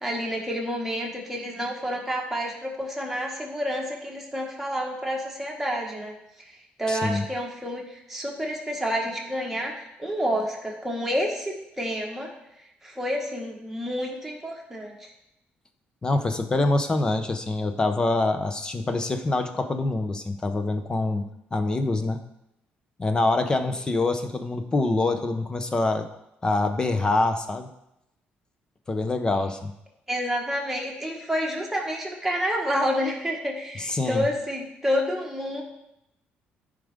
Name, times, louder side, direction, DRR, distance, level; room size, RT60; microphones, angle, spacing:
voice 1, 0.0-6.1 6.8-12.3 12.8-15.1 30.1-35.6, equal, 5° right, -2 dB, 1.8 m, -29 dB
voice 2, 6.9-7.2 16.0-21.2 21.5-22.2 23.0-26.1 26.4-27.7 28.9-29.7 33.8-34.2, left 2 dB, 20° left, 8 dB, 0.8 m, -25 dB
13.5 x 5.2 x 3.7 m, 0.84 s
cardioid pair, 135°, 4 cm